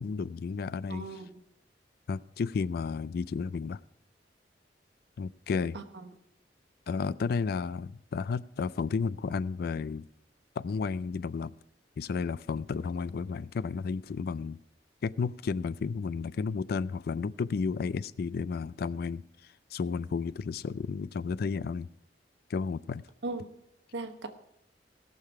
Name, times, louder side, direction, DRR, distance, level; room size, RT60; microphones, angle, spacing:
voice 1, 0.0-1.2 2.1-3.8 5.2-5.8 6.9-10.1 10.6-11.5 12.0-14.6 15.0-19.2 19.7-21.9 22.5-23.0, left 5 dB, 60° left, 18 dB, 0.3 m, -32 dB
voice 2, 0.9-1.3 5.7-6.1 23.2-23.5 23.9-24.3, right 3 dB, 75° right, 7 dB, 1.2 m, -38 dB
17.5 x 6.7 x 4.7 m, 0.79 s
head